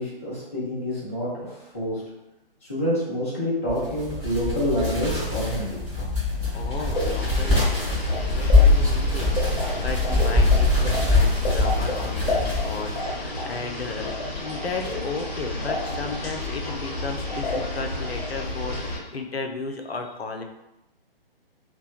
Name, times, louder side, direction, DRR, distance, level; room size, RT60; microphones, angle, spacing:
voice 1, 0.0-1.4 1.7-2.0 2.7-5.8, equal, 15° left, -10 dB, 0.3 m, -27 dB
sound 1, 3.7-12.9, left 2 dB, 10° right, 0.8 m, -22 dB
voice 2, 6.5-20.4, left 3 dB, 85° left, 3 dB, 0.5 m, -34 dB
sound 2, 6.9-19.0, left 2 dB, 50° left, 0.7 m, -30 dB
2.7 x 2.1 x 2.3 m, 0.94 s
figure-of-eight pair, 135°, 30 cm